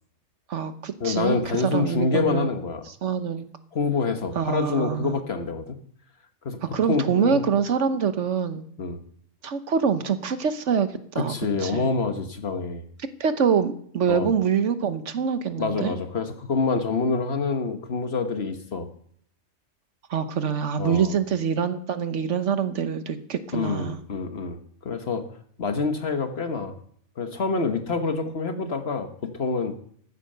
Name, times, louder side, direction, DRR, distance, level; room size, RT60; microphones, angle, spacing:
voice 1, 0.5-2.5 3.0-3.4 4.3-5.2 6.7-8.6 9.4-11.3 11.6-11.9 13.2-15.9 20.1-24.0 28.1-28.3 28.6-28.7, right 7 dB, 70° right, 11 dB, 1.3 m, -25 dB
voice 2, 1.0-2.8 3.7-5.8 6.4-6.6 6.8-7.5 8.8-9.0 11.1-12.8 14.1-14.3 15.6-18.9 20.8-21.1 23.5-25.2 25.6-26.8 27.2-29.7, left 4 dB, 55° left, 7 dB, 1.5 m, -27 dB
14.0 x 8.4 x 6.7 m, 0.63 s
omnidirectional pair, 1.3 m